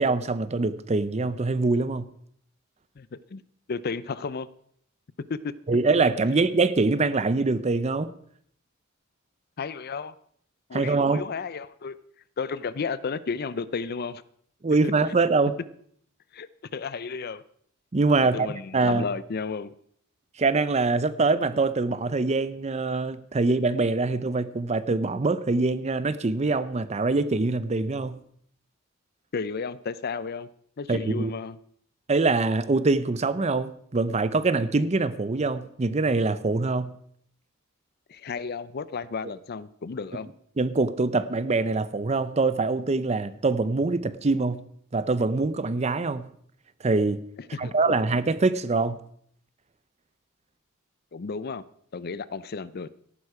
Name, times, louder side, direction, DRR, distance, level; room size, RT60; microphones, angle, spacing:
voice 1, 0.0-2.1 5.7-8.1 10.7-11.2 14.6-15.5 17.9-18.5 18.7-19.0 20.4-28.2 30.9-31.3 32.1-36.9 40.6-44.6 44.9-46.3 46.8-47.3 47.6-49.0, right 3 dB, 30° right, 0.6 m, -24 dB
voice 2, 3.0-3.4 3.7-4.5 5.3-5.5 9.6-10.1 10.7-12.0 12.4-14.2 14.8-14.9 16.3-17.4 18.2-19.7 29.3-30.5 30.8-31.6 38.1-40.3 47.5-48.0 51.1-51.6 51.9-52.9, left 5 dB, 50° left, 0.5 m, -33 dB
14.0 x 11.5 x 4.8 m
head